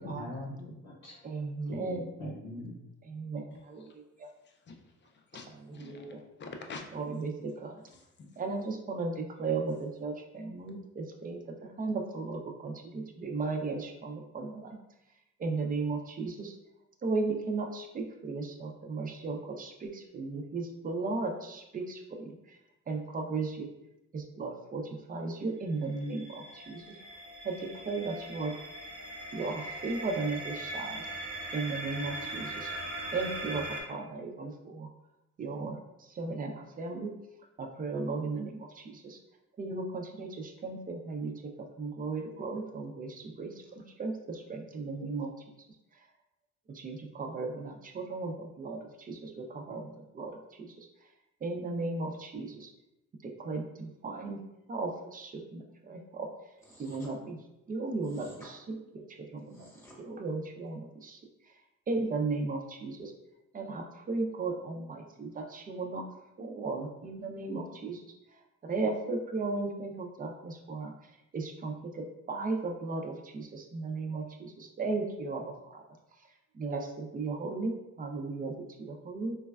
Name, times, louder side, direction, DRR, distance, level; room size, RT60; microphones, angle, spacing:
voice 1, 0.0-1.3 1.7-2.7, left 1 dB, 75° left, -4 dB, 0.8 m, -41 dB
voice 2, 1.2-2.1 3.1-3.4 3.7-3.8 5.8-6.2 6.9-7.3 7.6-7.8 8.4-14.8 15.4-16.5 17.0-22.3 22.9-23.7 24.1-26.8 27.4-27.5 27.9-28.5 29.3-31.0 31.5-32.7 33.1-34.9 35.4-35.8 36.2-37.1 37.6-39.2 39.6-41.3 41.8-43.5 44.0-45.3 46.7-50.7 51.4-52.7 53.2-54.4 54.7-56.3 56.8-57.4 57.7-59.7 60.0-61.2 61.9-63.1 63.5-66.0 66.4-68.0 68.6-70.9 71.3-75.8 76.5-78.5 78.8-79.4, right 3 dB, 30° right, 3 dB, 0.4 m, -35 dB
voice 3, 4.4-7.5 7.9-8.3 9.7-9.8 10.6-10.7, left 3 dB, 40° left, 3 dB, 0.4 m, -48 dB
sound 1, 25.7-33.8, right 1 dB, 75° right, 0.8 m, -40 dB
sound 2, 56.6-57.1 58.0-58.5 59.4-60.0, equal, 10° left, 0.9 m, -53 dB
3.2 x 2.2 x 2.2 m, 0.91 s
cardioid pair, 90°, 30 cm